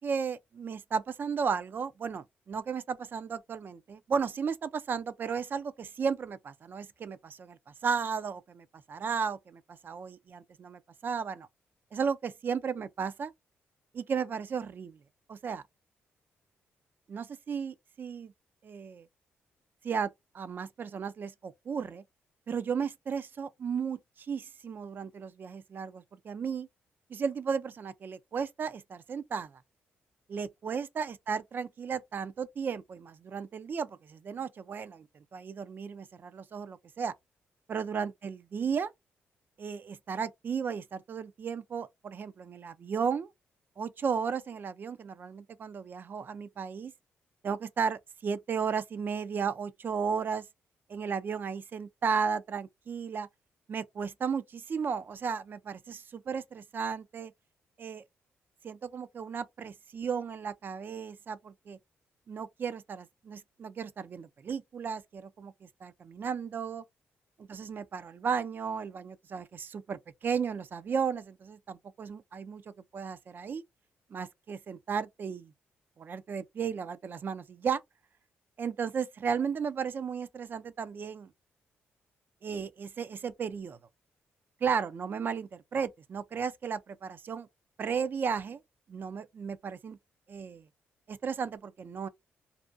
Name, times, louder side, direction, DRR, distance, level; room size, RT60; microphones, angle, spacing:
voice 1, 0.0-11.5 11.9-13.3 13.9-15.0 15.3-15.6 17.1-18.3 18.6-19.1 19.8-22.0 22.5-26.7 27.1-29.5 30.3-35.1 35.3-37.1 37.7-38.9 39.6-43.3 43.8-46.9 47.4-50.5 50.9-53.3 53.7-57.3 57.8-58.0 58.6-61.8 62.3-66.8 67.4-72.6 72.9-73.6 74.1-75.5 76.0-77.8 78.6-81.3 82.4-83.8 84.6-87.5 87.8-88.6 88.9-90.0 90.3-90.7 91.1-92.1, right 6 dB, 45° right, 0.3 m, -34 dB
2.4 x 2.2 x 2.5 m
cardioid pair, 85°, 5 cm